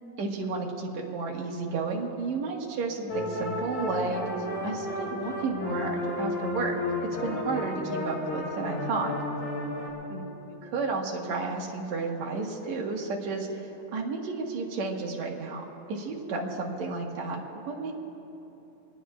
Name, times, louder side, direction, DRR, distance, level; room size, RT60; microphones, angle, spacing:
voice 1, 0.2-4.2 4.6-9.1 10.1-17.9, right 3 dB, 65° right, 0 dB, 2.6 m, -32 dB
sound 1, 3.1-9.9, left 2 dB, 80° left, 4.9 m, -32 dB
25.0 x 19.0 x 2.5 m, 3.0 s
omnidirectional pair, 3.4 m